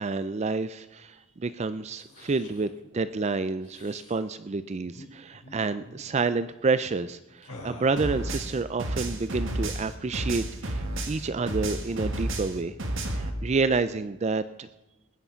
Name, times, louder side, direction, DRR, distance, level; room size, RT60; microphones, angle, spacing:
voice 1, 0.0-12.8 13.1-14.7, right 4 dB, 30° right, 13 dB, 0.4 m, -29 dB
sound 1, 1.8-2.7 3.6-4.2 4.8-5.1 5.3-5.5 5.8-6.1 7.4-8.4, left 2 dB, 85° left, 4.1 m, -47 dB
sound 2, 8.0-11.2 11.5-13.3, right 1 dB, 60° right, 2.1 m, -31 dB
20.5 x 9.7 x 5.7 m, 1.1 s
head